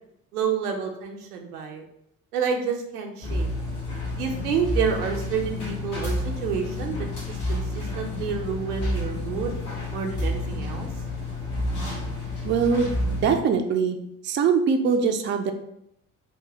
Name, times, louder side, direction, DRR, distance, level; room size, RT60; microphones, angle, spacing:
voice 1, 0.3-1.8 2.3-3.5 4.1-9.5 9.9-10.9, right 6 dB, 85° right, 3 dB, 0.6 m, -29 dB
sound 1, 3.2-13.4, left 1 dB, 85° left, 1.1 m, -30 dB
voice 2, 12.4-13.0 13.2-14.0 14.2-15.5, right 6 dB, 25° right, 5 dB, 0.4 m, -22 dB
3.4 x 2.1 x 3.4 m, 0.76 s
hypercardioid pair, 55°, 44 cm